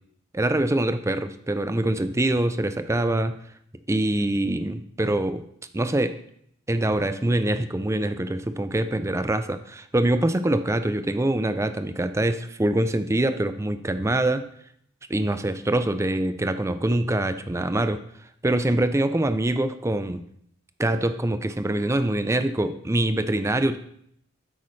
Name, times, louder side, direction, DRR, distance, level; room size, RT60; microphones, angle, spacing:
voice 1, 0.3-3.3 3.9-5.4 5.7-6.2 6.7-14.5 15.1-18.0 18.4-20.2 20.8-23.8, right 1 dB, 15° right, 10 dB, 0.4 m, -24 dB
9.7 x 8.1 x 3.2 m, 0.70 s
head